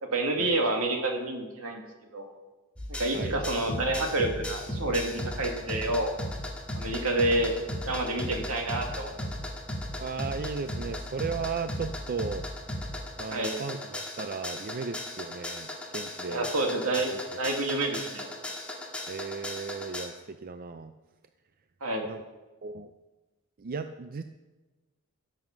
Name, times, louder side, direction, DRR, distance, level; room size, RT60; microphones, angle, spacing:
voice 1, 0.0-1.9 2.1-2.3 2.9-6.1 6.7-9.1 13.3-13.6 16.3-18.3 21.8-22.1, right 2 dB, 75° right, 2 dB, 2.2 m, -29 dB
sound 1, 2.8-20.1, left 1 dB, 5° left, 1.8 m, -36 dB
voice 2, 10.0-12.5 13.2-16.5 19.1-20.9 22.0-22.2 22.6-22.9 23.6-24.2, right 5 dB, 40° right, 9 dB, 0.5 m, -36 dB
15.5 x 7.8 x 6.0 m, 1.2 s
head